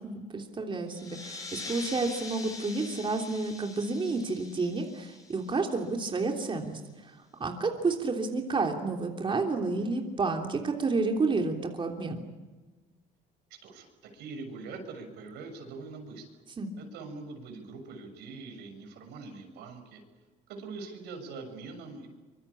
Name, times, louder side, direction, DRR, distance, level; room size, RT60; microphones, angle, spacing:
voice 1, 0.0-12.2 16.6-16.7, right 3 dB, 30° right, 2 dB, 3.2 m, -30 dB
sound 1, 0.9-6.1, left 3 dB, 20° left, 7.8 m, -44 dB
voice 2, 13.6-16.2 16.8-20.0 20.5-22.1, right 3 dB, 85° right, 5 dB, 6.8 m, -43 dB
25.0 x 24.5 x 8.6 m, 1.3 s
cardioid pair, 110°, 17 cm